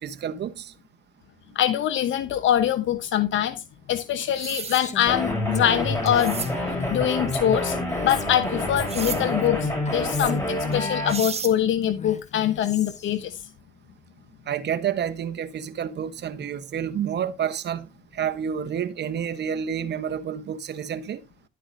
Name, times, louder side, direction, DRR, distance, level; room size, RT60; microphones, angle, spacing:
voice 1, 0.0-0.7 14.5-17.9 18.1-21.2, right 8 dB, 60° right, 1.0 m, -29 dB
voice 2, 1.5-3.6 3.9-6.4 6.9-7.8 8.0-13.4, left 11 dB, 75° left, 1.0 m, -24 dB
sound 1, 4.2-4.8 6.1-6.5 8.9-9.2 10.7-10.8 11.1-11.5, right 5 dB, 30° right, 1.2 m, -32 dB
Female speech woman speaking, 4.6-11.0 11.8-13.2, left 5 dB, 35° left, 1.6 m, -37 dB
sound 2, 5.1-11.1, left 1 dB, 15° left, 6.0 m, -28 dB
11.5 x 8.5 x 2.6 m
cardioid pair, 90°, 20 cm